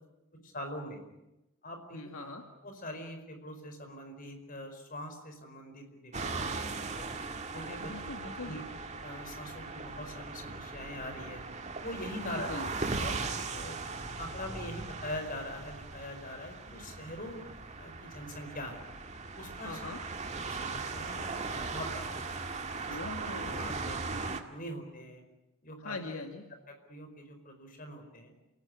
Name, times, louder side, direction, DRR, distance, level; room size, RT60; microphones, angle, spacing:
voice 1, 0.4-1.0 1.6-2.0 2.6-7.1 7.5-7.9 8.4-8.6 9.0-11.4 11.8-12.5 13.0-13.8 14.2-17.4 17.8-18.8 19.3-19.8 20.3-22.4 22.9-23.2 23.5-25.2 25.6-26.0 26.9-28.3, left 1 dB, 40° left, 5 dB, 4.8 m, -43 dB
voice 2, 1.9-2.5 7.8-8.6 12.2-12.7 19.6-20.0 22.9-23.7 25.8-26.5, left 2 dB, 75° left, 4 dB, 2.2 m, -41 dB
sound 1, 6.1-24.4, right 3 dB, 30° right, 1.9 m, -38 dB
29.0 x 18.0 x 9.7 m, 0.94 s
head